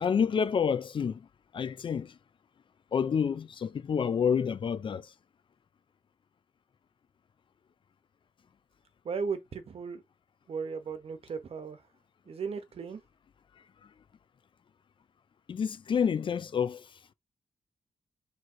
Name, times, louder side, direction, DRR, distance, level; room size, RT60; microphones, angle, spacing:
voice 1, 0.0-1.2 1.5-2.1 2.9-5.1 15.5-16.9, left 7 dB, 50° left, 0.4 m, -28 dB
voice 2, 9.0-10.0 10.5-11.8 12.3-13.0, right 5 dB, 60° right, 1.0 m, -36 dB
3.8 x 3.2 x 4.4 m
wide cardioid pair, 120°, 11 cm